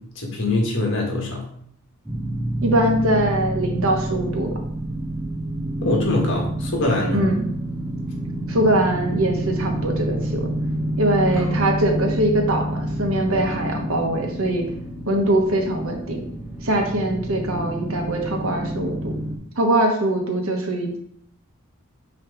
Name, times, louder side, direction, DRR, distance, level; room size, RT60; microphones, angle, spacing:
voice 1, 0.0-1.5 5.8-7.3 11.4-11.5, left 2 dB, 60° left, -2 dB, 1.8 m, -23 dB
sound 1, 2.1-19.4, right 1 dB, 5° right, 0.7 m, -28 dB
voice 2, 2.6-4.6 7.1-7.4 8.5-10.5 11.0-14.7 15.1-16.2 16.6-19.1 19.6-21.0, right 1 dB, 70° right, 2 dB, 1.2 m, -22 dB
6.0 x 3.2 x 5.0 m, 0.67 s
head